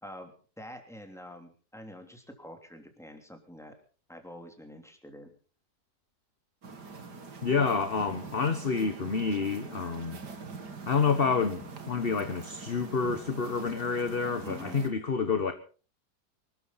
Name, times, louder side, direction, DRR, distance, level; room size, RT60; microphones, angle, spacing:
voice 1, 0.0-3.7 4.1-5.3 14.4-14.8, equal, ahead, 3.1 m, -46 dB
sound 1, 6.6-14.9, right 4 dB, 85° right, 2.8 m, -44 dB
voice 2, 7.4-10.2 10.9-15.5, left 5 dB, 40° left, 1.3 m, -28 dB
25.0 x 13.5 x 4.1 m
omnidirectional pair, 1.7 m